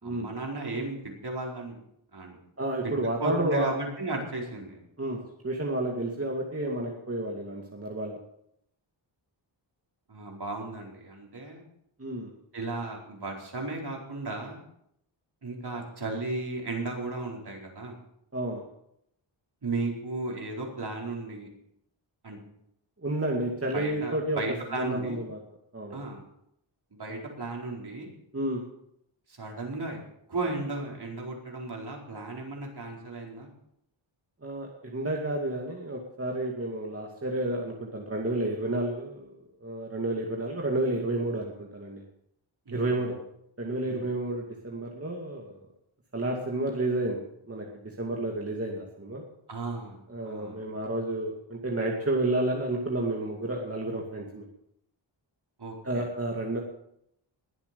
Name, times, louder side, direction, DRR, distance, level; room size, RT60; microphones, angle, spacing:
voice 1, 0.0-1.8 2.1-2.4 2.8-2.9 3.2-4.8 10.1-11.6 12.5-14.6 15.4-17.9 19.6-21.5 22.2-22.4 23.7-25.2 25.9-26.2 26.9-28.1 29.3-30.0 30.3-33.5 42.7-43.2 43.8-44.1 49.5-50.0 50.2-50.6 55.6-56.1, right 2 dB, 55° right, 0 dB, 4.6 m, -35 dB
voice 2, 2.6-3.8 5.0-8.2 12.0-12.3 18.3-18.6 23.0-24.4 24.7-25.4 25.7-26.0 28.3-28.6 34.4-42.0 42.7-43.1 43.6-45.6 46.1-47.7 48.0-49.2 50.1-54.4 55.8-56.6, right 1 dB, 30° right, -1 dB, 2.4 m, -31 dB
21.0 x 8.1 x 7.0 m, 0.76 s
wide cardioid pair, 105°, 48 cm